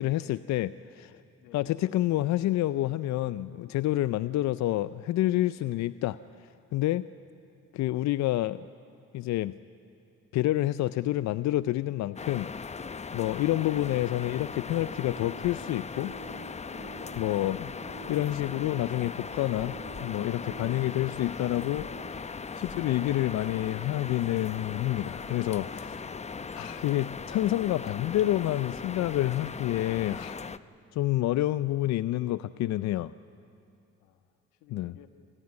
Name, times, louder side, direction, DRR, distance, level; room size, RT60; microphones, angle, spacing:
voice 1, 0.0-1.1 1.5-6.2 6.7-7.0 7.7-8.7 9.1-9.6 10.3-12.6 13.1-16.1 17.1-17.7 18.1-19.7 20.0-26.0 26.5-30.4 30.9-33.1 34.7-34.9, left 15 dB, 65° left, 15 dB, 0.5 m, -28 dB
voice 2, 0.8-1.7 7.2-7.3 22.8-23.3 31.1-31.4 34.0-35.1, left 11 dB, 90° left, 7 dB, 1.5 m, -59 dB
sound 1, 12.2-30.6, left 5 dB, 20° left, 0.7 m, -39 dB
sound 2, 14.7-24.2 26.5-26.6, right 13 dB, 70° right, 0.8 m, -53 dB
27.0 x 15.0 x 9.6 m, 2.5 s
supercardioid pair, 65°, 30 cm